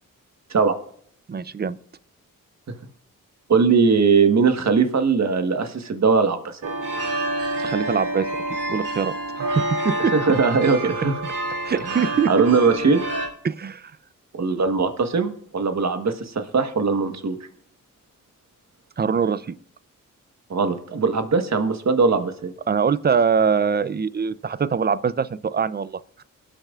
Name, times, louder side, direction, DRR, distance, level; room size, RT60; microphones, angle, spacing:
voice 1, 1.3-1.8 7.6-8.3 8.7-10.1 11.6-12.3 13.4-13.9 19.0-19.5 22.7-26.0, right 6 dB, 30° right, 16 dB, 0.5 m, -23 dB
voice 2, 3.5-6.7 10.1-11.1 11.8-12.0 12.3-13.0 14.3-17.4 20.5-22.5, right 5 dB, 55° right, 7 dB, 1.4 m, -20 dB
sound 1, 6.6-13.3, right 1 dB, 70° right, 2.3 m, -28 dB
22.5 x 9.0 x 2.5 m, 0.63 s
cardioid pair, 70°, 33 cm